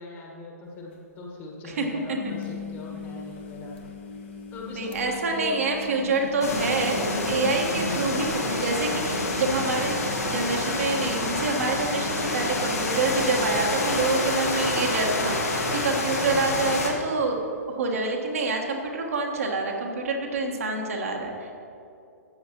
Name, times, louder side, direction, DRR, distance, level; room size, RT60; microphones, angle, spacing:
voice 1, 0.0-3.7 4.5-5.6 5.9-6.3 7.7-8.2 16.3-16.7, left 3 dB, 25° left, -1 dB, 1.6 m, -40 dB
sound 1, 0.7-0.8 0.9-1.0 2.0-15.0 15.4-15.8 16.1-16.2 18.0-18.1, left 5 dB, 45° left, 1.2 m, -41 dB
voice 2, 1.6-2.3 4.7-17.4 17.7-21.5, right 3 dB, 60° right, 0 dB, 1.4 m, -27 dB
sound 2, 6.4-16.9, left 2 dB, 65° left, 1.6 m, -28 dB
13.0 x 8.5 x 3.0 m, 2.6 s
figure-of-eight pair, 120°, 9 cm